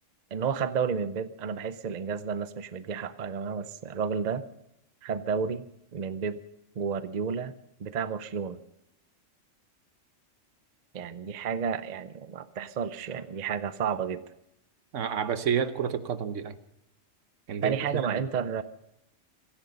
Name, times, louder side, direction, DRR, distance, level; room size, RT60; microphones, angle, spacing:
voice 1, 0.3-4.5 5.0-5.6 5.9-6.4 6.8-7.5 7.8-8.6 10.9-14.2 17.6-18.6, right 6 dB, 45° right, 13 dB, 0.7 m, -31 dB
voice 2, 14.9-16.6 17.5-17.8 18.1-18.2, right 7 dB, 70° right, 12 dB, 1.2 m, -29 dB
16.5 x 14.5 x 5.3 m, 0.82 s
omnidirectional pair, 1.3 m